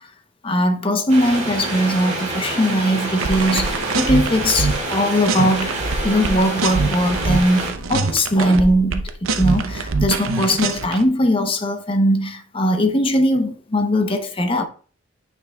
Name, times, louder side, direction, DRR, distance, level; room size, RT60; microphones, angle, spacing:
voice 1, 0.4-14.6, equal, 25° left, 0.8 m, -20 dB
sound 1, 1.1-7.7, right 2 dB, 35° right, 2.1 m, -27 dB
sound 2, 3.2-5.0 5.3-11.0, right 3 dB, 85° right, 0.7 m, -24 dB
9.0 x 5.3 x 2.3 m
head